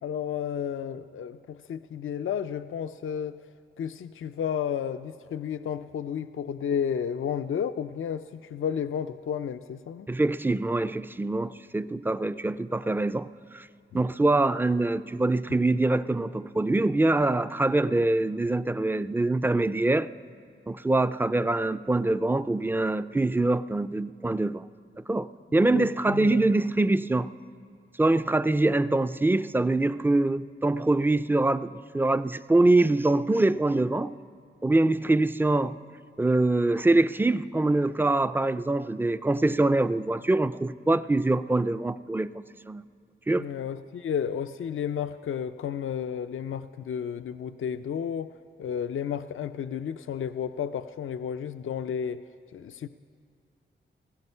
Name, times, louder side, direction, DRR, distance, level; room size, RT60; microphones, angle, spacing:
voice 1, 0.0-3.5 3.8-10.1 25.7-26.5 43.4-52.3 52.5-52.9, left 8 dB, 75° left, 0.4 m, -32 dB
voice 2, 10.1-13.3 13.5-13.7 13.9-20.1 20.7-24.6 25.1-25.3 25.5-27.3 28.0-34.2 34.6-35.8 36.2-42.8 43.3-43.4, right 2 dB, 10° right, 0.3 m, -24 dB
16.5 x 15.5 x 5.5 m
wide cardioid pair, 75°, 21 cm